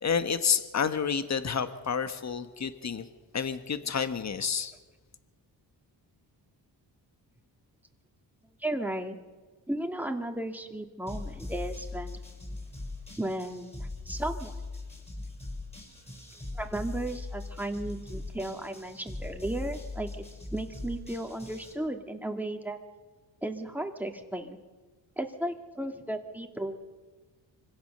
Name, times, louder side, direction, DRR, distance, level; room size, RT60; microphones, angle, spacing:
voice 1, 0.0-3.1 3.3-4.7, left 6 dB, 35° left, 10 dB, 1.4 m, -29 dB
voice 2, 8.6-9.2 9.7-12.2 13.2-14.5 16.5-20.2 20.5-22.8 23.4-24.6 25.2-26.8, right 1 dB, 5° right, 4 dB, 2.4 m, -35 dB
sound 1, 11.1-21.7, left 2 dB, 15° left, 6.1 m, -40 dB
25.0 x 16.5 x 6.8 m, 1.3 s
cardioid pair, 85°, 45 cm